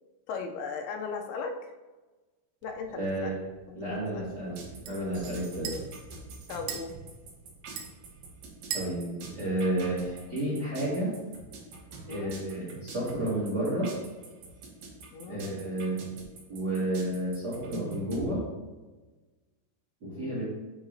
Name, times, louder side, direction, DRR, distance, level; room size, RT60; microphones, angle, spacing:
voice 1, 0.3-1.7 2.6-3.4 3.7-4.3 5.6-5.9 6.5-6.9 12.1-12.4 15.1-15.5 20.1-20.4, left 5 dB, 85° left, 4 dB, 2.5 m, -38 dB
sound 1, 2.6-10.4, right 8 dB, 80° right, 2.6 m, -44 dB
voice 2, 2.9-3.4 3.7-4.6 4.9-5.7 8.7-11.1 12.1-13.9 15.2-16.0 16.5-18.4 20.0-20.4, right 1 dB, 35° right, -9 dB, 1.9 m, -31 dB
sound 2, 4.5-18.3, right 3 dB, 65° right, 1.9 m, -44 dB
8.0 x 4.8 x 2.6 m, 1.2 s
omnidirectional pair, 4.5 m